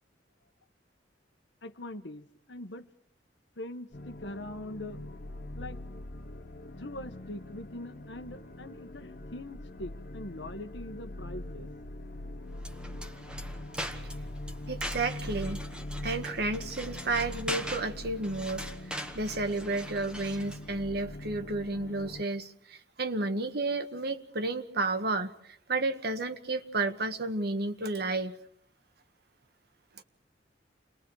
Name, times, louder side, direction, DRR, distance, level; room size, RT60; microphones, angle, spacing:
voice 1, 1.6-2.9 3.6-5.0 5.5-5.8 6.8-11.7, left 1 dB, 80° left, 8 dB, 1.3 m, -42 dB
sound 1, 3.9-22.2, left 1 dB, 55° left, 1.0 m, -42 dB
sound 2, 12.6-20.7, equal, 5° right, 1.2 m, -41 dB
voice 2, 14.7-15.6 16.0-28.4, right 2 dB, 65° right, 8 dB, 1.6 m, -32 dB
29.5 x 21.5 x 4.8 m, 0.67 s
head